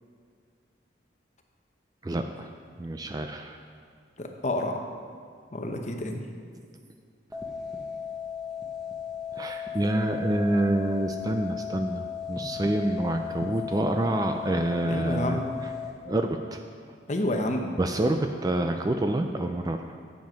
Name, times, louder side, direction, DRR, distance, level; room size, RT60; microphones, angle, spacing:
voice 1, 2.0-2.5 2.8-3.6 9.3-15.4 16.0-16.6 17.8-19.9, right 1 dB, 20° right, 5 dB, 0.3 m, -27 dB
voice 2, 4.2-4.7 5.5-6.2 14.9-15.5 17.1-17.7, left 1 dB, 40° left, 3 dB, 0.8 m, -29 dB
sound 1, 7.3-15.9, left 7 dB, 5° right, 0.9 m, -36 dB
9.1 x 7.3 x 5.1 m, 2.3 s
head